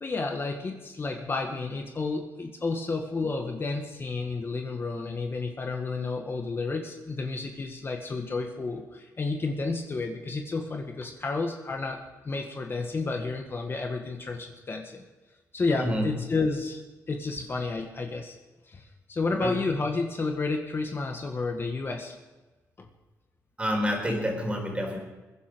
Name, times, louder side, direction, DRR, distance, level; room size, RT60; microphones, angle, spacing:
voice 1, 0.0-15.0 15.5-16.8 17.1-18.4 18.7-22.2 22.8-22.9, left 3 dB, 35° left, 3 dB, 1.7 m, -31 dB
voice 2, 15.8-16.1 19.2-19.6 23.6-25.0, equal, 20° right, 2 dB, 4.4 m, -28 dB
22.0 x 10.5 x 5.2 m, 1.2 s
cardioid pair, 95°, 6 cm